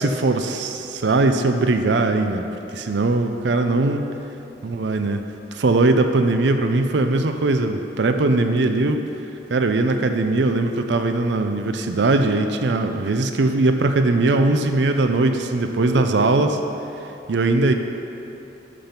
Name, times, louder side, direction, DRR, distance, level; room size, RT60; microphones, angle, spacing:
voice 1, 0.0-2.4 2.7-4.1 4.6-5.2 5.5-9.1 9.5-16.6 17.3-17.7, right 2 dB, 80° right, 7 dB, 0.5 m, -20 dB
11.0 x 5.2 x 5.8 m, 2.9 s
head